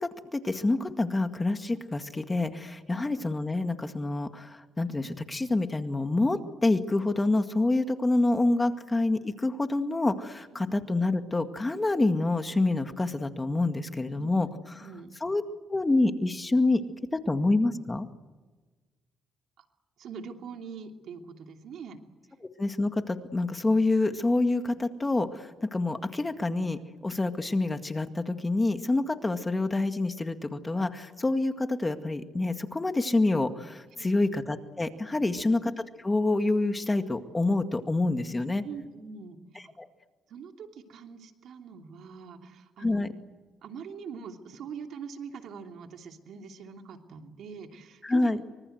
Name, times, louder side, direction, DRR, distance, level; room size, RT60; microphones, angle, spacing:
voice 1, 0.0-14.5 14.8-14.9 15.2-15.4 15.7-16.8 17.3-18.1 22.6-35.7 36.0-38.6 39.8-39.9 42.8-43.1 48.0-48.4, left 2 dB, 20° left, 7 dB, 2.0 m, -27 dB
voice 2, 10.5-10.8 14.2-14.5 14.8-15.1 19.6-19.7 20.0-22.0 33.9-34.3 35.2-35.4 38.6-39.7 40.3-43.1 43.6-48.4, right 6 dB, 70° right, 4 dB, 2.9 m, -43 dB
25.0 x 25.0 x 8.0 m, 1.3 s
cardioid pair, 90°, 0 cm